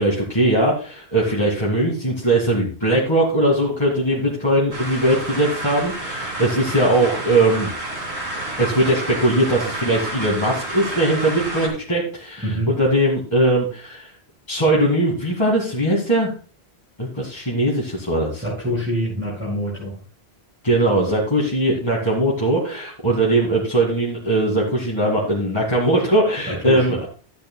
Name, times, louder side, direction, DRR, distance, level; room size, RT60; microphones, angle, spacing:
voice 1, 0.0-7.7 8.6-14.1 14.5-16.3 17.0-18.4 20.6-27.1, right 1 dB, 25° left, -4 dB, 2.0 m, -20 dB
sound 1, 4.7-11.7, right 2 dB, 80° right, 2.9 m, -30 dB
voice 2, 12.4-12.7 18.3-20.0 26.5-26.9, equal, 10° right, -8 dB, 5.4 m, -25 dB
13.5 x 10.0 x 2.3 m, 0.38 s
omnidirectional pair, 1.1 m